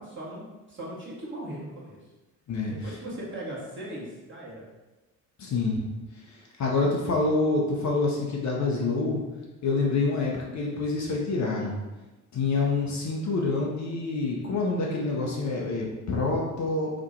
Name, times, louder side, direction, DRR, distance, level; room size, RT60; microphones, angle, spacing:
voice 1, 0.0-2.0 2.6-4.6, right 1 dB, 25° right, -5 dB, 1.4 m, -38 dB
voice 2, 2.5-2.9 5.4-5.8 6.1-9.2 9.6-11.8 12.3-16.9, left 3 dB, 40° left, -2 dB, 0.8 m, -27 dB
2.9 x 2.5 x 3.9 m, 1.1 s
figure-of-eight pair, 45°, 44 cm